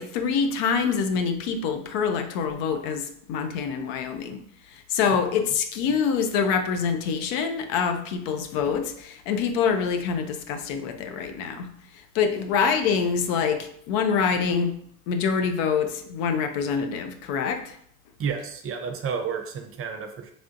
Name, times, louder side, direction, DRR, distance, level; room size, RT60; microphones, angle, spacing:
voice 1, 0.0-4.4 4.7-11.7 12.1-14.8 15.1-17.8, left 6 dB, 80° left, 6 dB, 0.5 m, -25 dB
voice 2, 18.2-20.3, right 6 dB, 35° right, 5 dB, 0.5 m, -31 dB
3.3 x 2.6 x 2.5 m, 0.67 s
supercardioid pair, 85°, 38 cm